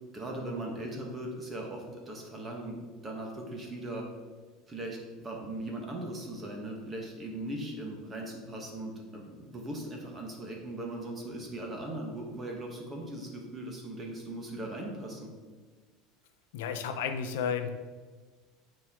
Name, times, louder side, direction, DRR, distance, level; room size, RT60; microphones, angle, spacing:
voice 1, 0.1-2.8 3.0-4.0 4.7-15.3, right 1 dB, 20° right, 0 dB, 1.2 m, -39 dB
voice 2, 16.5-17.7, left 7 dB, 85° left, 7 dB, 0.7 m, -32 dB
9.3 x 4.4 x 3.6 m, 1.4 s
cardioid pair, 165°, 0 cm